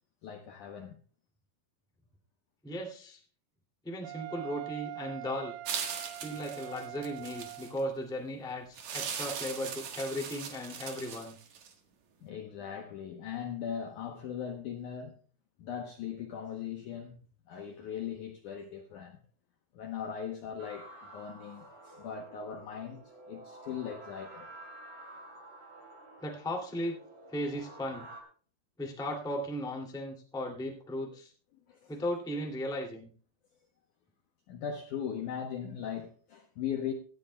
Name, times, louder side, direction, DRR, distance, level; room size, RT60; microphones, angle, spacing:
voice 1, 0.2-1.0 12.2-15.2 15.6-17.2 17.5-19.2 19.7-24.5 31.7-32.1 34.5-36.9, left 8 dB, 75° left, 1.9 m, -39 dB
voice 2, 2.6-3.2 3.8-5.5 6.2-11.4 26.2-26.9 27.3-28.1 28.8-31.3 31.9-33.1, equal, ahead, 1.2 m, -36 dB
Wind instrument woodwind instrument, 4.0-7.8, right 20 dB, 90° right, 3.0 m, -43 dB
sound 1, 5.7-7.8 8.8-11.7, right 7 dB, 55° right, 2.1 m, -39 dB
sound 2, 20.6-28.2, right 2 dB, 35° right, 3.6 m, -50 dB
17.5 x 13.0 x 2.3 m
omnidirectional pair, 4.8 m